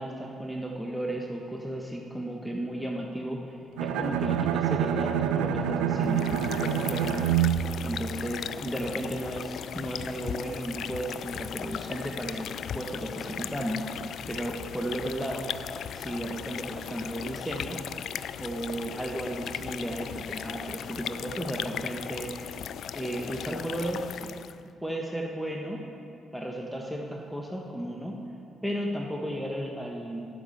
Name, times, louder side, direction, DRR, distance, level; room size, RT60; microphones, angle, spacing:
voice 1, 0.0-13.8 14.3-15.5 15.9-17.8 18.4-22.3 22.9-24.4 24.8-25.8 26.3-28.2 28.6-30.3, right 1 dB, ahead, -1 dB, 1.5 m, -34 dB
Bowed string instrument, 3.8-8.8, right 9 dB, 80° right, 0.5 m, -27 dB
sound 1, 6.0-24.6, left 9 dB, 65° left, 0.3 m, -37 dB
8.6 x 7.3 x 8.8 m, 2.5 s
hypercardioid pair, 45°, 0 cm